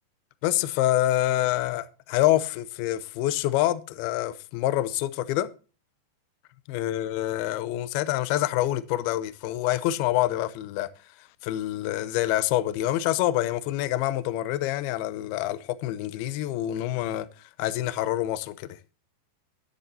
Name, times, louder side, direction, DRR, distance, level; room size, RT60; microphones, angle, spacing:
voice 1, 0.4-5.5 6.7-10.9 11.4-17.3 17.6-18.7, left 14 dB, 80° left, 2.3 m, -26 dB
13.0 x 11.0 x 2.7 m
omnidirectional pair, 5.1 m